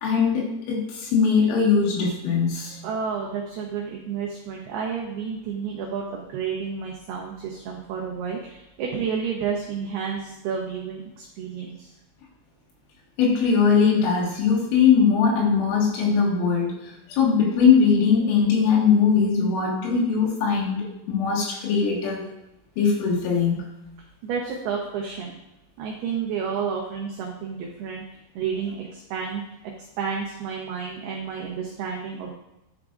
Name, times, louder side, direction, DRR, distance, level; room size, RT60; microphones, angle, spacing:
voice 1, 0.0-2.8 13.2-22.2 22.8-23.7, left 6 dB, 85° left, -3 dB, 4.1 m, -21 dB
voice 2, 2.8-11.9 24.2-25.3 25.8-28.0 28.4-29.4 29.8-32.3, right 6 dB, 90° right, -1 dB, 2.2 m, -30 dB
11.0 x 4.9 x 2.4 m, 0.91 s
omnidirectional pair, 5.6 m